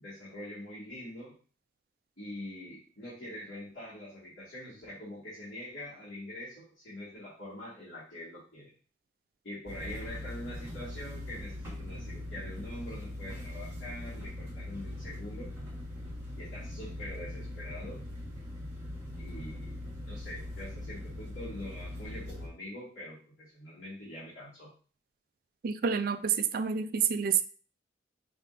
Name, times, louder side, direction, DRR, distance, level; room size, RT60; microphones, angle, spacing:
voice 1, 0.0-1.3 2.2-8.7 9.4-15.5 16.4-18.0 19.2-24.7, left 1 dB, 65° left, -11 dB, 2.1 m, -44 dB
sound 1, 9.7-22.5, left 1 dB, 15° right, 1.4 m, -41 dB
voice 2, 25.6-27.4, right 7 dB, 50° right, 10 dB, 0.3 m, -28 dB
5.2 x 3.5 x 2.6 m, 0.40 s
head